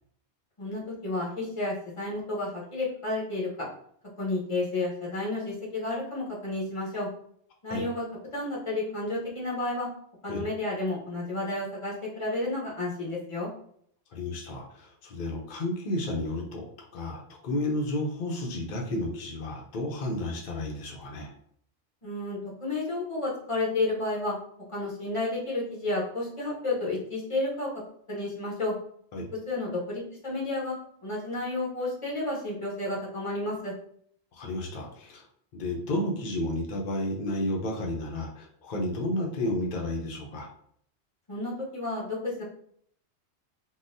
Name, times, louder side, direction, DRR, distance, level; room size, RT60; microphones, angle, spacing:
voice 1, 0.6-3.7 4.2-7.1 7.6-8.0 8.3-9.9 10.2-13.5 22.0-24.3 24.7-27.7 28.1-28.7 29.5-30.8 31.0-33.7 41.3-42.4, left 2 dB, 30° left, -5 dB, 1.0 m, -31 dB
voice 2, 14.1-16.7 16.9-21.3 29.1-29.3 34.3-35.2 35.6-40.5, left 1 dB, 50° left, -1 dB, 0.7 m, -32 dB
3.8 x 2.1 x 2.6 m, 0.65 s
omnidirectional pair, 1.2 m